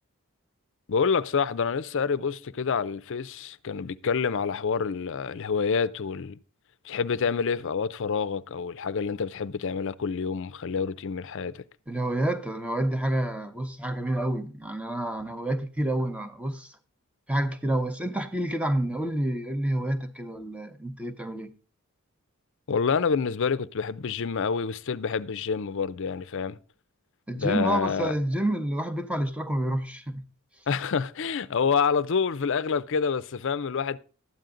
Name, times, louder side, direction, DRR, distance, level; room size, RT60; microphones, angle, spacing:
voice 1, 0.9-6.4 6.8-11.6 22.7-26.6 27.3-28.1 30.7-34.0, left 5 dB, 60° left, 0.5 m, -27 dB
voice 2, 11.9-16.8 17.3-21.5 27.3-30.2, right 1 dB, 5° right, 0.8 m, -28 dB
12.5 x 9.1 x 3.8 m
head